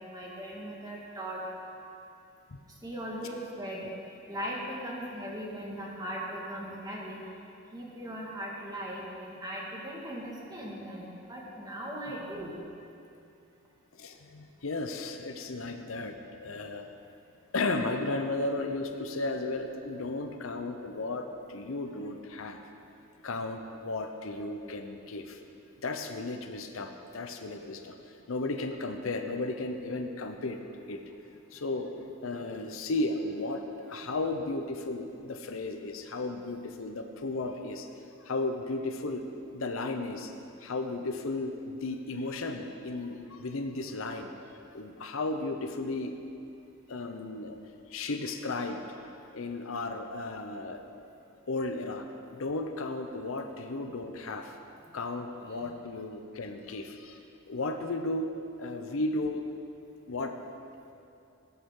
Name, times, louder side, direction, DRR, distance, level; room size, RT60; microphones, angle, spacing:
voice 1, 0.1-1.4 2.8-3.8 4.3-7.2 7.7-12.6, equal, 20° right, -4 dB, 1.8 m, -39 dB
voice 2, 13.9-16.9 17.5-22.6 23.2-25.4 25.8-28.0 28.3-30.6 30.9-31.0 31.5-31.9 32.2-37.9 38.2-39.3 39.5-40.3 40.6-46.2 46.9-47.6 47.9-48.8 49.3-50.8 51.5-52.1 52.3-54.6 54.9-57.2 57.5-58.3 58.6-59.4 60.1-60.4, left 2 dB, 65° left, 6 dB, 0.7 m, -34 dB
18.0 x 8.0 x 3.8 m, 2.7 s
head